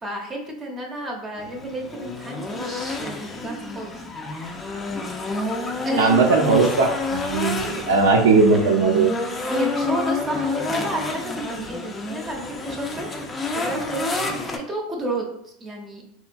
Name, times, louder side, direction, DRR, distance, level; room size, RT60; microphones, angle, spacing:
voice 1, 0.0-4.0 5.8-6.1 9.5-13.1 13.5-16.0, right 1 dB, 25° right, 0 dB, 0.7 m, -31 dB
sound 1, 1.4-14.6, left 3 dB, 20° left, 0.4 m, -29 dB
voice 2, 6.0-9.2, right 4 dB, 80° right, 2 dB, 0.5 m, -18 dB
2.9 x 2.2 x 2.5 m, 0.74 s
hypercardioid pair, 90°, 0 cm